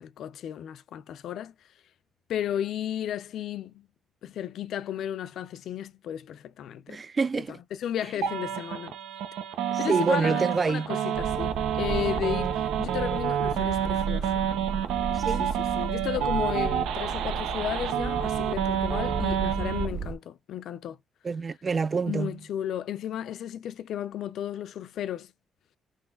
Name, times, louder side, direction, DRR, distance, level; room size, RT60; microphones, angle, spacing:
voice 1, 0.0-1.5 2.3-3.9 4.2-7.0 7.7-8.9 9.8-14.4 15.4-21.0 22.0-25.3, left 10 dB, 75° left, 0.4 m, -34 dB
voice 2, 6.9-7.6 9.7-10.9 15.1-15.5 21.2-22.4, right 5 dB, 35° right, 0.3 m, -27 dB
sound 1, 8.2-19.9, right 9 dB, 90° right, 0.8 m, -29 dB
sound 2, 11.1-20.1, right 4 dB, 55° right, 1.2 m, -34 dB
4.0 x 3.1 x 3.7 m
cardioid pair, 90°, 0 cm